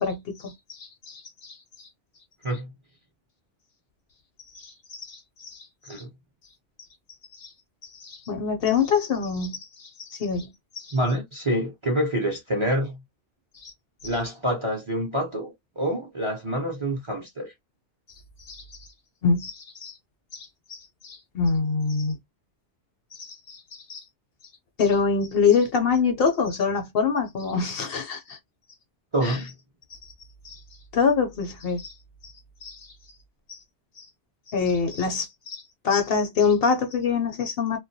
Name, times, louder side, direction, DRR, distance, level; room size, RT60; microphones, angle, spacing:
voice 1, 0.0-1.6 4.5-6.0 7.4-7.5 7.9-11.0 13.6-13.7 18.5-18.6 19.2-19.9 20.3-22.2 23.2-24.0 24.8-28.4 29.2-29.4 30.4-30.6 30.9-31.9 32.2-32.3 32.6-32.8 33.5-33.6 34.0-34.1 34.5-37.8, left 5 dB, 60° left, 0.7 m, -26 dB
voice 2, 10.9-13.0 14.0-17.5 29.1-29.5, right 1 dB, 35° right, 0.5 m, -27 dB
2.2 x 2.1 x 2.6 m
omnidirectional pair, 1.2 m